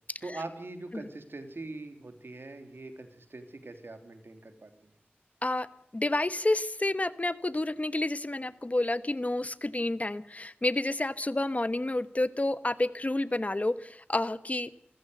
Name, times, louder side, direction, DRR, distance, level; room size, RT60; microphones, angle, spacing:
voice 1, 0.2-4.9, right 2 dB, 70° right, 7 dB, 3.3 m, -42 dB
voice 2, 5.9-14.7, left 2 dB, 35° left, 14 dB, 1.1 m, -29 dB
27.5 x 15.0 x 8.0 m, 0.67 s
wide cardioid pair, 50°, 4 cm